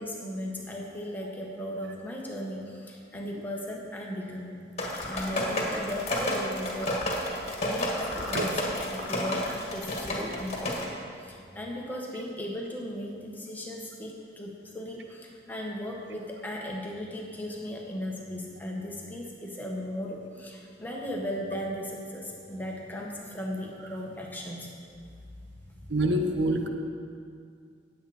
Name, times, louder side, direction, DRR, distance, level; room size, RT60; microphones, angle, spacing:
voice 1, 0.0-4.7 5.1-7.3 7.6-8.6 8.9-24.7 25.7-25.9, equal, 10° left, -2 dB, 1.5 m, -37 dB
sound 1, 4.8-10.9, left 1 dB, 35° left, 1.9 m, -31 dB
voice 2, 25.9-26.7, right 1 dB, 70° right, 4 dB, 0.9 m, -26 dB
18.5 x 8.0 x 4.3 m, 2.3 s
head